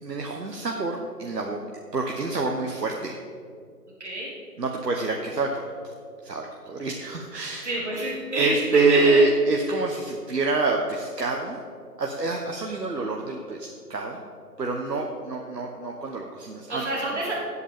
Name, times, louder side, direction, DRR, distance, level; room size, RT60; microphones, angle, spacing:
voice 1, 0.0-1.6 1.9-3.1 4.6-5.9 6.2-7.7 8.3-11.6 12.0-14.2 14.6-16.8 17.1-17.2, right 3 dB, 85° right, 1 dB, 1.3 m, -26 dB
voice 2, 4.0-4.3 7.6-9.3 16.7-17.4, right 1 dB, 45° right, -3 dB, 2.7 m, -26 dB
16.0 x 8.5 x 3.7 m, 2.2 s
figure-of-eight pair, 165°, 48 cm